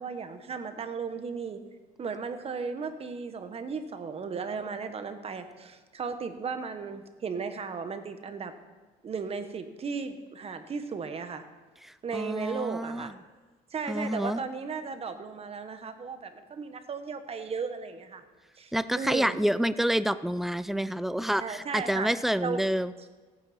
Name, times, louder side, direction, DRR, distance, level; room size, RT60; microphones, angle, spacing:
voice 1, 0.0-1.6 2.0-8.5 9.0-11.4 12.0-13.1 13.7-18.2 18.6-19.4 21.4-22.1 22.4-22.6, right 5 dB, 35° right, 9 dB, 1.1 m, -35 dB
voice 2, 11.8-13.1 13.9-14.4 18.7-22.9, equal, ahead, 15 dB, 0.4 m, -28 dB
15.5 x 9.2 x 4.3 m, 1.3 s
cardioid pair, 110°, 17 cm